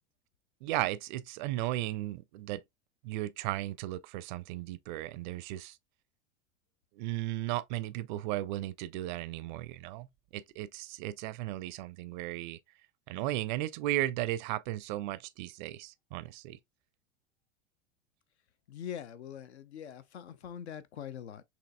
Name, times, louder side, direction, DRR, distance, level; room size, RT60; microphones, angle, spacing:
voice 1, 0.6-2.6 3.0-5.8 7.0-10.1 10.3-12.6 13.1-16.6, right 15 dB, 45° right, 0.4 m, -35 dB
voice 2, 18.7-21.4, left 9 dB, 65° left, 0.5 m, -43 dB
6.1 x 2.8 x 2.2 m
figure-of-eight pair, 85°, 35 cm